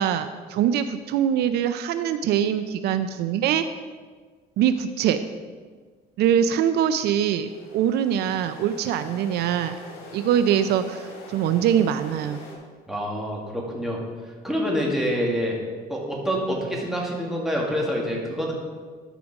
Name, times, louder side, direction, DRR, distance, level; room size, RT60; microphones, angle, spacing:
voice 1, 0.0-3.7 4.6-5.2 6.2-9.8 10.1-12.4, right 9 dB, 75° right, 11 dB, 0.5 m, -23 dB
sound 1, 7.4-12.5, left 1 dB, 70° left, 3.1 m, -43 dB
voice 2, 12.9-14.0 14.4-15.6 15.9-18.5, equal, ahead, -3 dB, 2.2 m, -26 dB
12.5 x 5.0 x 4.9 m, 1.5 s
cardioid pair, 110°, 17 cm